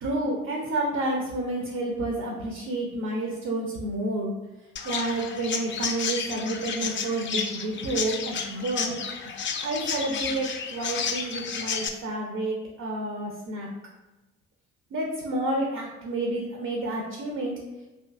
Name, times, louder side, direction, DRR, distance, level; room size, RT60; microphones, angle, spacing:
voice 1, 0.0-4.3 4.8-9.0 9.6-13.7 14.9-17.6, right 2 dB, 55° right, -1 dB, 0.6 m, -30 dB
Chirp tweet, 4.8-11.9, left 6 dB, 35° left, 0.4 m, -32 dB
2.7 x 2.6 x 2.4 m, 1.0 s
hypercardioid pair, 40°, 33 cm